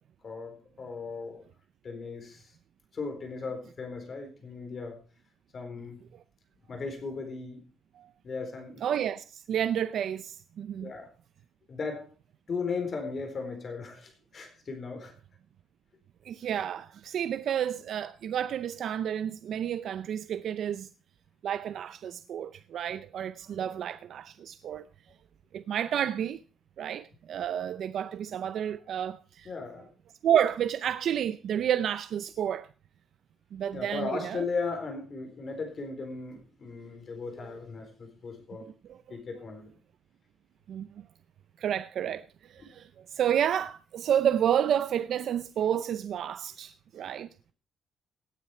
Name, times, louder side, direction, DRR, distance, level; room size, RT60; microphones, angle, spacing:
voice 1, 0.2-1.4 1.8-2.5 2.9-5.0 5.5-6.0 6.7-7.6 8.2-8.8 10.8-11.1 11.7-12.0 12.5-15.1 29.5-29.9 33.7-38.7 39.1-39.7, left 4 dB, 35° left, 4.0 m, -37 dB
voice 2, 8.8-10.9 16.2-20.9 21.4-24.9 25.5-26.4 26.8-29.5 30.2-32.7 33.5-34.5 38.8-39.2 40.7-40.9 41.6-47.3, right 9 dB, 60° right, 0.5 m, -30 dB
17.5 x 9.1 x 4.3 m
cardioid pair, 160°, 0 cm